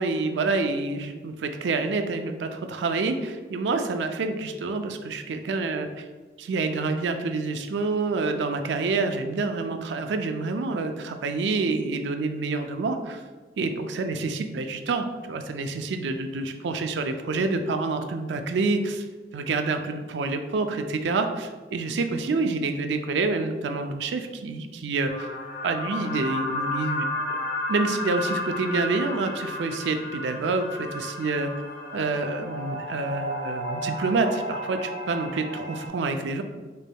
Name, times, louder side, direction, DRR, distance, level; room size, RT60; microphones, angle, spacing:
voice 1, 0.0-6.1 6.4-13.2 13.6-19.0 19.3-25.3 25.6-27.4 27.7-31.5 31.9-36.4, right 3 dB, 85° right, 6 dB, 0.4 m, -27 dB
sound 1, 25.1-35.9, left 1 dB, 55° left, 0.5 m, -33 dB
4.1 x 3.4 x 2.2 m, 1.3 s
head